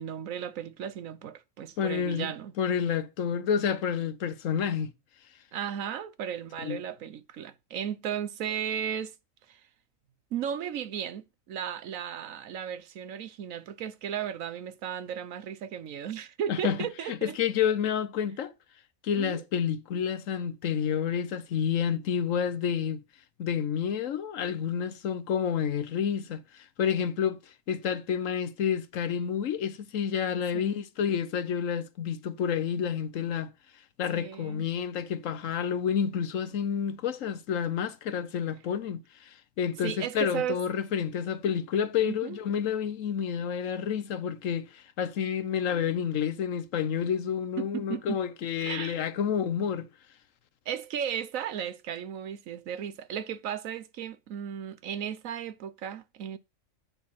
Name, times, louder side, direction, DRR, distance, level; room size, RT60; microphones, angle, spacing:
voice 1, 0.0-2.5 5.5-9.1 9.5-9.6 10.3-17.4 19.1-19.4 30.5-30.8 34.1-34.6 39.8-40.6 42.0-42.4 47.6-48.2 48.6-49.0 50.7-56.4, right 9 dB, 85° right, 1.2 m, -35 dB
voice 2, 1.8-4.9 6.6-6.8 16.5-16.8 17.1-18.5 19.0-23.0 23.4-27.4 27.7-33.5 34.0-49.9, left 8 dB, 75° left, 1.2 m, -29 dB
8.6 x 6.4 x 5.7 m
omnidirectional pair, 1.4 m